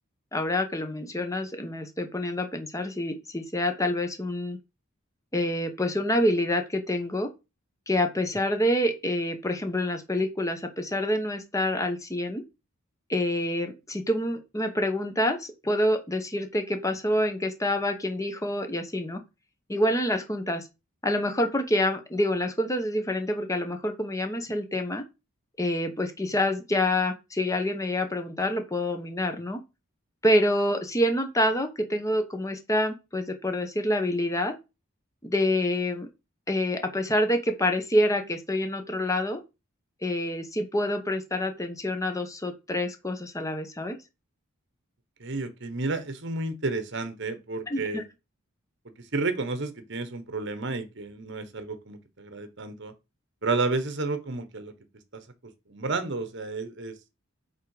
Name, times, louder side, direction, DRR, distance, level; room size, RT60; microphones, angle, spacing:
voice 1, 0.3-4.6 5.3-7.3 7.9-12.4 13.1-19.2 19.7-20.7 21.0-25.0 25.6-29.6 30.2-34.5 35.2-36.1 36.5-39.4 40.0-44.0 47.7-48.0, left 1 dB, 15° left, 1.0 m, -27 dB
voice 2, 45.2-48.0 49.0-52.9 53.4-54.7 55.1-55.2 55.7-56.9, right 3 dB, 55° right, 1.3 m, -31 dB
8.2 x 3.7 x 4.9 m
head